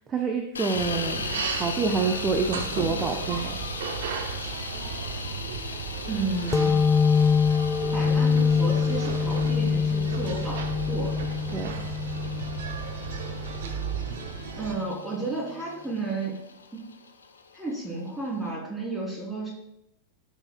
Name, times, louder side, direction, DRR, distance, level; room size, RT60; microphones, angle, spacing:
voice 1, 0.0-3.6 11.5-11.7, right 5 dB, 20° right, 4 dB, 0.8 m, -27 dB
sound 1, 0.6-18.5, left 5 dB, 75° left, 0.8 m, -39 dB
sound 2, 0.7-14.8, right 5 dB, 55° right, 0.8 m, -34 dB
voice 2, 6.1-6.8 7.9-11.1 14.6-16.4 16.7-16.9 17.5-19.5, right 2 dB, 5° right, -3 dB, 3.1 m, -32 dB
sound 3, 6.5-13.8, left 6 dB, 15° left, 0.4 m, -25 dB
15.0 x 6.1 x 2.2 m, 0.83 s
figure-of-eight pair, 90°, 0 cm